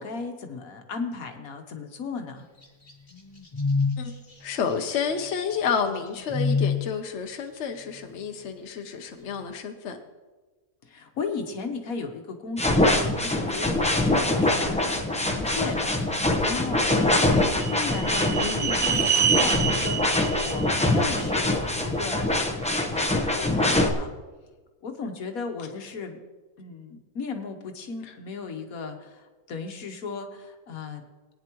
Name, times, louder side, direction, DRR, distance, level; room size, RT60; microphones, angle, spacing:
voice 1, 0.0-2.4 10.8-17.0 17.6-22.3 22.7-24.1 24.8-26.2 26.6-31.0, left 4 dB, 70° left, 5 dB, 1.5 m, -35 dB
sound 1, 2.6-6.9, left 4 dB, 35° left, 1.7 m, -28 dB
voice 2, 4.4-10.0 18.4-18.8, left 6 dB, 55° left, 4 dB, 1.0 m, -30 dB
sound 2, 12.6-23.9, left 1 dB, 5° left, 0.6 m, -24 dB
sound 3, 16.7-21.9, right 8 dB, 65° right, 0.5 m, -28 dB
19.0 x 9.4 x 3.0 m, 1.3 s
omnidirectional pair, 1.6 m